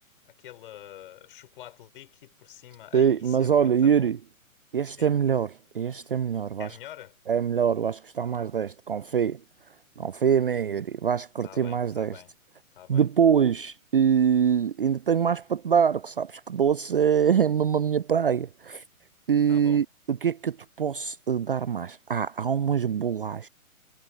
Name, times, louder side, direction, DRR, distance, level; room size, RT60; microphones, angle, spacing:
voice 1, 0.2-4.1 5.0-5.1 6.6-7.2 11.4-12.3 12.7-13.1 19.5-19.8, left 13 dB, 40° left, 6.7 m, -46 dB
voice 2, 2.9-4.2 4.7-6.7 7.3-9.4 10.0-12.2 12.9-18.8 19.3-23.5, right 7 dB, 40° right, 0.5 m, -24 dB
figure-of-eight pair, 125°, 43 cm